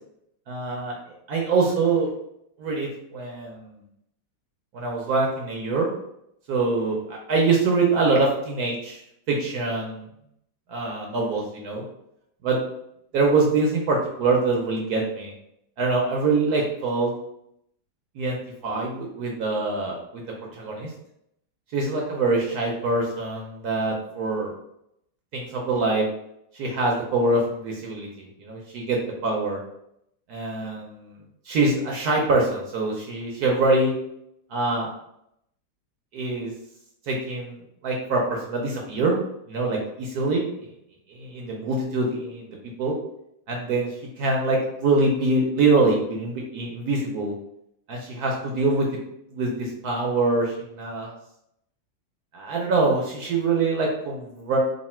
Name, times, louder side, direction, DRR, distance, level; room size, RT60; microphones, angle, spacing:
voice 1, 0.5-0.9 1.3-2.1 2.6-3.7 4.7-5.9 6.5-9.0 9.3-10.0 10.7-11.8 12.4-12.6 13.1-15.3 15.8-17.1 18.1-18.4 18.6-20.2 20.5-20.9 21.7-24.5 25.3-26.1 26.5-29.6 30.3-31.2 31.4-33.9 34.5-34.9 36.1-36.5 37.1-37.6 37.8-39.1 39.5-40.4 41.1-42.9 43.5-47.3 47.9-48.9 49.3-51.1 52.3-54.6, right 3 dB, 65° right, -1 dB, 1.0 m, -24 dB
3.1 x 2.6 x 4.2 m, 0.77 s
omnidirectional pair, 2.0 m